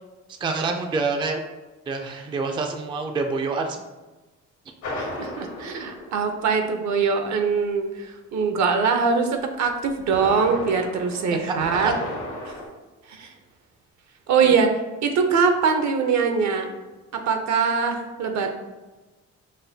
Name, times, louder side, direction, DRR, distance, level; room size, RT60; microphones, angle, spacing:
voice 1, 0.4-1.4 1.9-3.8 11.8-11.9 14.4-14.5, right 4 dB, 15° right, 4 dB, 0.3 m, -26 dB
sound 1, 4.8-6.9 9.8-12.7, left 1 dB, 80° left, 1.2 m, -34 dB
voice 2, 5.0-12.0 12.4-12.6 13.1-13.3 14.3-14.7 15.0-16.7 17.1-18.5, right 5 dB, 65° right, 5 dB, 0.6 m, -22 dB
5.2 x 2.2 x 2.7 m, 1.2 s
cardioid pair, 90°, 30 cm